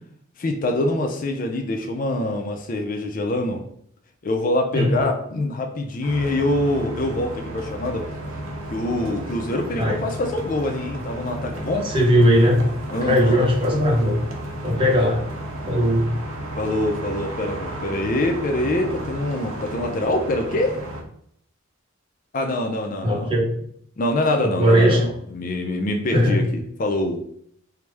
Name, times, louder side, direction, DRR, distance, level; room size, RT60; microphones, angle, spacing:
voice 1, 0.4-3.6 4.2-8.2 8.7-11.9 12.9-13.4 16.6-20.8 22.3-23.4 24.0-27.2, left 1 dB, 40° left, 4 dB, 0.4 m, -25 dB
voice 2, 4.7-5.1 9.8-10.0 11.8-12.6 13.0-14.2 14.6-15.2 15.7-16.1 23.0-23.5 24.4-25.0 26.1-26.5, equal, 25° right, -1 dB, 0.7 m, -18 dB
sound 1, 6.0-21.0, right 1 dB, 80° right, 0.8 m, -33 dB
4.5 x 2.1 x 3.3 m, 0.67 s
head